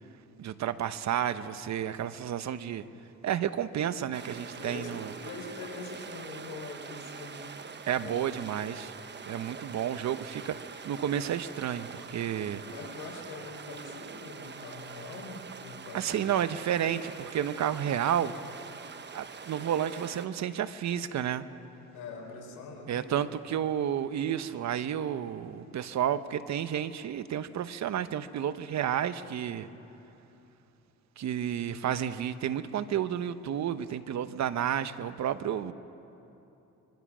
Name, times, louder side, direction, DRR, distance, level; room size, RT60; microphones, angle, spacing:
voice 1, 0.4-2.9 3.2-5.1 7.9-8.9 9.3-10.6 10.8-12.6 15.9-18.3 19.1-21.5 22.9-29.7 31.2-35.7, right 9 dB, 65° right, 12 dB, 1.0 m, -31 dB
sound 1, 4.1-20.3, right 5 dB, 35° right, 1.1 m, -44 dB
voice 2, 4.5-7.4 7.9-8.4 12.3-16.3 21.9-23.3, left 4 dB, 90° left, 1 dB, 4.7 m, -43 dB
26.0 x 24.0 x 6.2 m, 3.0 s
cardioid pair, 90°, 30 cm